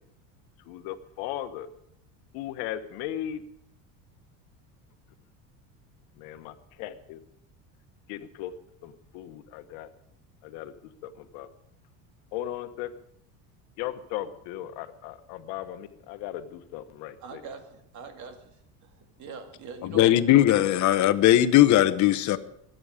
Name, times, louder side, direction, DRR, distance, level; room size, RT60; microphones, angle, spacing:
voice 1, 0.7-1.7 2.3-3.4 6.2-7.2 8.1-8.5 8.8-9.9 10.4-10.7 11.0-11.5 12.3-12.9 13.8-17.4, left 12 dB, 75° left, 1.3 m, -37 dB
voice 2, 17.2-18.9 19.2-20.1, right 5 dB, 45° right, 2.2 m, -42 dB
voice 3, 19.8-22.4, left 13 dB, 45° left, 1.0 m, -19 dB
23.5 x 9.1 x 5.0 m
supercardioid pair, 125°, 39 cm